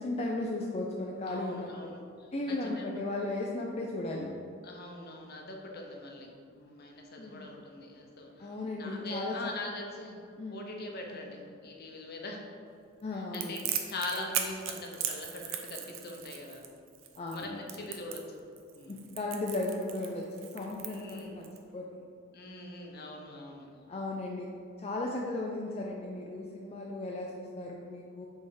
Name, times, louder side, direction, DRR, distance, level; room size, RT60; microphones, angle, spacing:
voice 1, 0.0-1.9 2.3-4.3 7.2-7.5 8.4-9.5 10.4-10.6 11.1-11.3 13.0-13.7 17.2-17.6 18.9-22.0 23.9-24.5 24.8-28.3, left 2 dB, 30° left, -2 dB, 0.5 m, -36 dB
voice 2, 1.3-3.0 4.6-8.5 8.8-10.2 10.5-12.4 13.1-16.7 17.3-18.2 18.7-19.0 20.8-21.4 22.3-23.7, left 2 dB, 50° left, 1 dB, 0.8 m, -42 dB
Crackle, 13.3-21.6, right 9 dB, 70° right, 0.6 m, -38 dB
6.8 x 3.5 x 4.8 m, 2.3 s
head